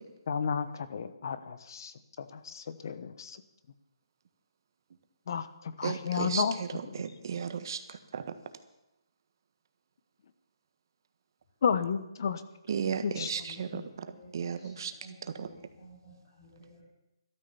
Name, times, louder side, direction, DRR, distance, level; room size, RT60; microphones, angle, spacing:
voice 1, 0.3-3.4 5.3-6.6 6.8-7.0 11.6-12.4 13.0-13.3 13.7-13.9, left 6 dB, 50° left, 13 dB, 1.1 m, -32 dB
voice 2, 5.8-6.4 7.0-8.2 12.7-13.8 14.3-14.9 15.4-15.5, right 7 dB, 50° right, 9 dB, 1.4 m, -34 dB
voice 3, 13.4-14.7 15.0-16.8, equal, 30° left, -9 dB, 7.7 m, -53 dB
13.5 x 12.5 x 7.1 m, 0.87 s
hypercardioid pair, 165°, 3 cm